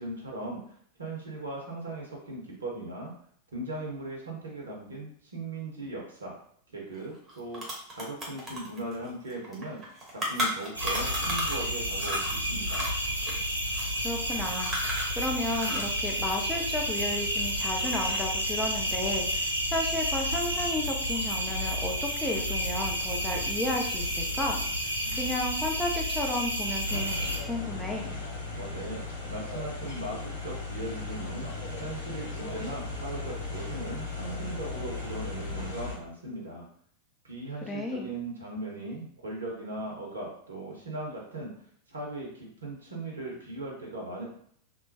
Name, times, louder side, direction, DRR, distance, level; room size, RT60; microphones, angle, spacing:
voice 1, 0.0-3.1 3.5-6.3 6.7-7.6 7.9-9.8 10.1-12.9 28.6-31.5 31.8-36.7 37.2-41.5 41.9-44.2, right 2 dB, 70° right, -2 dB, 0.7 m, -38 dB
sound 1, 6.9-7.0 7.3-11.7 12.0-17.4 17.8-18.4, equal, 20° right, 1.0 m, -35 dB
sound 2, 10.7-27.4, equal, 90° left, 0.5 m, -30 dB
voice 2, 14.0-14.7 15.2-24.6 25.2-28.2 37.6-38.1, left 1 dB, 5° left, 0 dB, 0.5 m, -33 dB
sound 3, 26.8-36.0, left 3 dB, 70° left, 0.9 m, -37 dB
3.0 x 2.1 x 2.7 m, 0.64 s
figure-of-eight pair, 90°, 0 cm